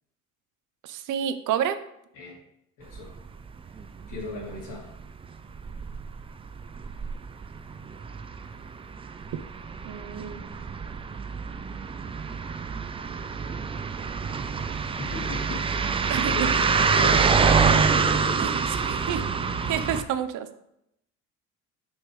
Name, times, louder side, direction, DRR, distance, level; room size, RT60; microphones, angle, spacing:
voice 1, 0.8-1.8 9.9-11.1 16.1-16.5 17.4-17.8 18.4-19.2 19.7-20.6, right 9 dB, 70° right, 11 dB, 0.7 m, -30 dB
voice 2, 2.8-3.1 4.1-4.9 15.0-15.7 16.0-19.0, left 2 dB, 80° left, -4 dB, 3.0 m, -37 dB
sound 1, 2.9-3.3 3.6-4.7 5.0-5.3 5.5-20.0, right 5 dB, 20° right, 0.3 m, -26 dB
7.1 x 6.4 x 3.2 m, 0.79 s
cardioid pair, 125°, 32 cm